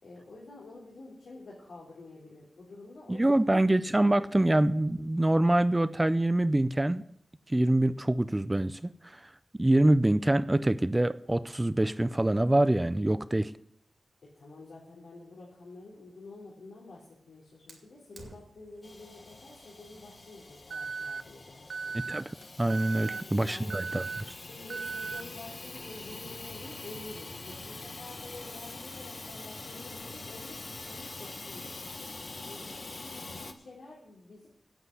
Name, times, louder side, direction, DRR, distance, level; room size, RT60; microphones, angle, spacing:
voice 1, 0.0-3.6 14.2-22.0 23.0-23.8 24.2-31.8 32.3-34.5, left 2 dB, 85° left, -4 dB, 3.2 m, -49 dB
voice 2, 3.1-7.0 7.5-9.2 9.6-13.5 21.9-24.0, right 1 dB, 20° right, 14 dB, 0.5 m, -25 dB
Fire, 17.7-22.6, right 2 dB, 65° right, 2.6 m, -57 dB
Hiss / Toilet flush / Trickle dribble, 18.8-33.5, left 3 dB, 45° left, 1.3 m, -44 dB
Alarm, 20.7-21.2 21.7-22.2 22.7-23.2 23.7-24.2 24.7-25.2, right 4 dB, 80° right, 0.5 m, -36 dB
9.5 x 8.1 x 8.2 m, 0.72 s
wide cardioid pair, 90°, 0 cm